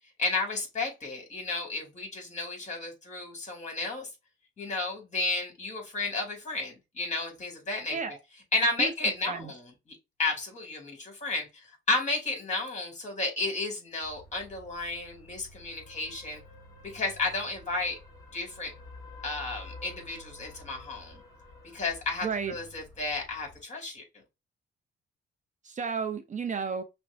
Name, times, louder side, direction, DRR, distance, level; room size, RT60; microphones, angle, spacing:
voice 1, 0.2-4.1 4.6-8.0 8.5-11.5 11.9-16.4 16.8-17.9 18.3-18.7 19.2-21.2 21.7-24.0, left 3 dB, 35° left, 2.5 m, -32 dB
sound 1, 14.0-23.6, left 2 dB, 15° left, 1.9 m, -50 dB
voice 2, 22.2-22.5 25.6-26.8, right 5 dB, 40° right, 0.6 m, -32 dB
6.0 x 2.2 x 2.5 m
cardioid pair, 90°, 20 cm